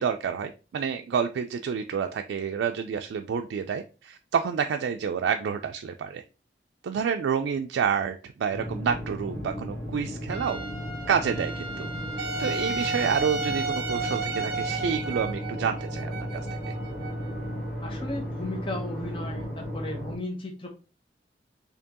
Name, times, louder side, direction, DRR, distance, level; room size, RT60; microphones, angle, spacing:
voice 1, 0.0-6.2 6.8-10.7 11.1-11.9 12.4-16.5, right 7 dB, 85° right, 5 dB, 0.3 m, -29 dB
sound 1, 8.5-20.2, equal, 10° left, 1.3 m, -35 dB
Trumpet, 10.3-14.9, right 1 dB, 60° left, 1.2 m, -41 dB
Wind instrument woodwind instrument, 12.2-17.8, right 4 dB, 55° right, 0.7 m, -33 dB
voice 2, 17.8-20.7, left 1 dB, 30° left, 2 dB, 0.7 m, -35 dB
4.4 x 2.9 x 2.8 m, 0.33 s
head